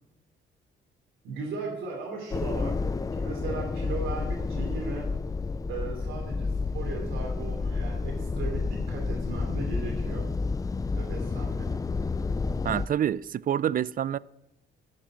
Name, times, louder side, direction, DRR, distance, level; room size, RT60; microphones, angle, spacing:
voice 1, 1.2-5.1 5.7-10.3 10.9-11.7, right 4 dB, 80° right, 2.9 m, -37 dB
sound 1, 2.3-12.9, left 4 dB, 20° left, 0.4 m, -30 dB
voice 2, 12.6-14.2, right 10 dB, 45° right, 0.4 m, -27 dB
10.0 x 7.2 x 9.1 m
cardioid pair, 90°, 20 cm